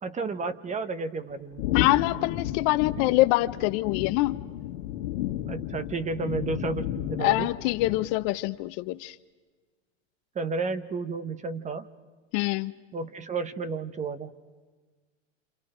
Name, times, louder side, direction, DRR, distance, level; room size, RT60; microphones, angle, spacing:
voice 1, 0.0-1.7 5.5-7.5 10.3-11.9 12.9-14.3, right 4 dB, 20° right, 12 dB, 1.1 m, -32 dB
sound 1, 1.6-8.3, left 12 dB, 65° left, 1.9 m, -32 dB
voice 2, 1.7-4.4 7.2-9.2 12.3-12.7, left 19 dB, 45° left, 13 dB, 0.7 m, -25 dB
29.0 x 28.0 x 5.0 m, 1.4 s
hypercardioid pair, 125°, 38 cm